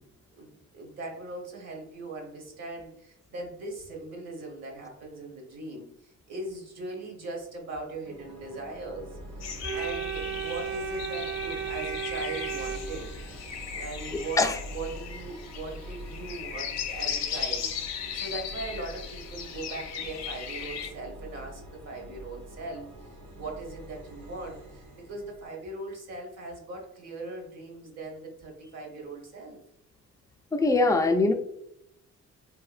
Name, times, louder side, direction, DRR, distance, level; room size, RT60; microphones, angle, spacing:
voice 1, 0.4-13.1 13.8-14.4 14.7-29.6, right 2 dB, 55° right, 1 dB, 1.0 m, -40 dB
sound 1, 8.0-25.5, equal, 80° right, 1.3 m, -45 dB
sound 2, 9.4-20.9, left 8 dB, 60° left, 0.5 m, -37 dB
Organ, 9.6-13.6, right 9 dB, 40° right, 0.7 m, -35 dB
voice 2, 30.5-31.3, left 3 dB, 10° left, 4 dB, 0.4 m, -22 dB
3.1 x 2.8 x 2.4 m, 0.75 s
cardioid pair, 90°, 30 cm